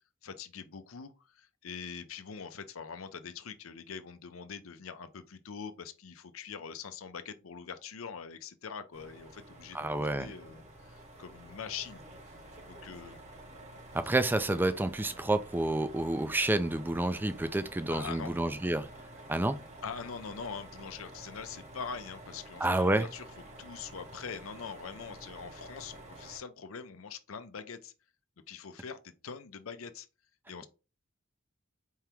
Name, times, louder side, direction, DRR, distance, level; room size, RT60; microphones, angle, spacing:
voice 1, 0.2-12.0 12.7-13.2 17.9-18.3 19.8-23.3 23.6-27.9 28.5-30.1 30.5-30.7, left 6 dB, 90° left, 0.6 m, -43 dB
sound 1, 8.9-26.4, right 1 dB, 35° right, 0.9 m, -50 dB
voice 2, 9.7-10.3 13.9-18.9 19.3-19.6 22.6-23.1, right 2 dB, 10° right, 0.3 m, -29 dB
4.6 x 2.9 x 3.4 m
head